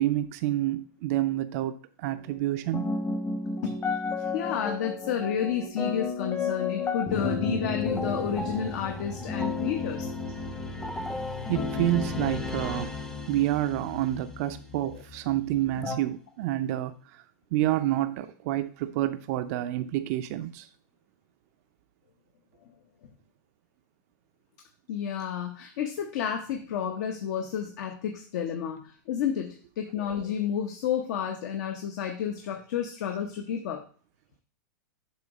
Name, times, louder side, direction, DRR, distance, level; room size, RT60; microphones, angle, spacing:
voice 1, 0.0-2.9 11.5-12.9 13.3-17.2 17.5-20.7, right 14 dB, 50° right, 9 dB, 0.5 m, -28 dB
sound 1, 2.1-16.0, left 4 dB, 25° left, 0.9 m, -34 dB
voice 2, 4.2-10.2 14.9-15.0 24.9-33.8, left 8 dB, 60° left, 4 dB, 0.9 m, -31 dB
sound 2, 7.1-13.8, left 2 dB, 5° left, 0.6 m, -36 dB
7.3 x 3.1 x 5.0 m, 0.42 s
hypercardioid pair, 120°, 10 cm